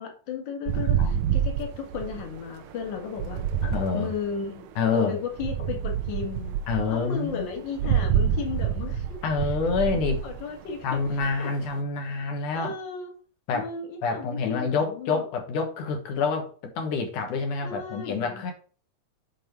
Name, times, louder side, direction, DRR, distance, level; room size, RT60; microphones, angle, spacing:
voice 1, 0.0-3.5 3.9-6.6 6.9-9.2 10.2-11.0 11.4-11.5 12.5-13.1 13.5-15.2 17.6-18.4, left 6 dB, 45° left, 3 dB, 2.0 m, -34 dB
sound 1, 0.7-4.6 5.4-11.7, right 9 dB, 75° right, 2.0 m, -28 dB
voice 2, 3.6-4.1 4.8-5.2 6.7-7.5 7.8-8.0 9.2-10.2 10.8-12.7 13.5-13.7 14.0-18.5, left 4 dB, 90° left, 4 dB, 3.0 m, -27 dB
7.2 x 5.2 x 4.7 m, 0.41 s
omnidirectional pair, 3.4 m